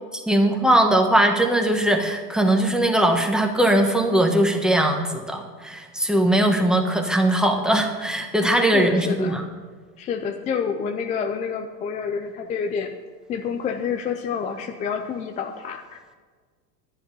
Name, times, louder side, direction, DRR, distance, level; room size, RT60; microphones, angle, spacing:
voice 1, 0.1-9.4, right 1 dB, ahead, 4 dB, 1.3 m, -20 dB
voice 2, 8.6-9.3 10.0-12.9 13.3-16.0, left 6 dB, 15° left, 5 dB, 0.3 m, -28 dB
10.5 x 10.0 x 5.4 m, 1.5 s
hypercardioid pair, 100°, 50 cm